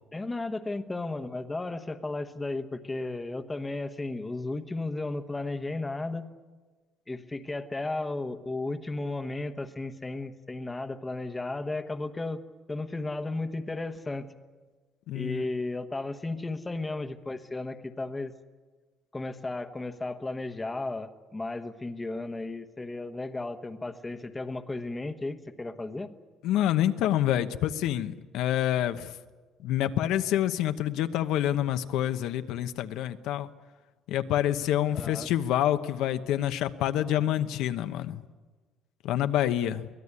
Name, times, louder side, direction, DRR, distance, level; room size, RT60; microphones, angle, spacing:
voice 1, 0.1-6.3 7.1-12.4 12.7-14.3 15.1-18.3 19.1-26.1 34.9-35.3, left 2 dB, 10° left, 9 dB, 1.1 m, -34 dB
voice 2, 15.1-15.4 26.4-29.1 29.6-33.5 34.1-38.2 39.0-39.9, left 12 dB, 75° left, 9 dB, 1.0 m, -27 dB
23.5 x 18.0 x 9.8 m, 1.3 s
cardioid pair, 170°, 0 cm